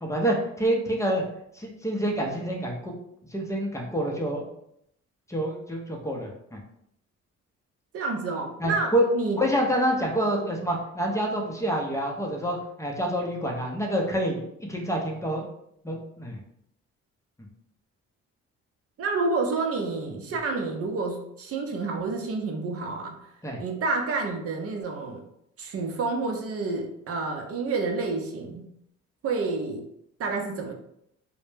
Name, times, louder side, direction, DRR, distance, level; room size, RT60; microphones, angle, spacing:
voice 1, 0.0-1.2 1.5-2.9 3.3-4.5 5.3-6.6 8.6-9.0 9.4-15.4 15.8-16.4 23.4-23.6, right 1 dB, 10° left, 0 dB, 0.5 m, -27 dB
voice 2, 7.9-9.4 19.0-23.2 23.6-25.3 25.6-28.7 29.2-29.8 30.2-30.7, right 3 dB, 50° right, 3 dB, 0.6 m, -29 dB
2.1 x 2.0 x 3.1 m, 0.74 s
cardioid pair, 90°, 30 cm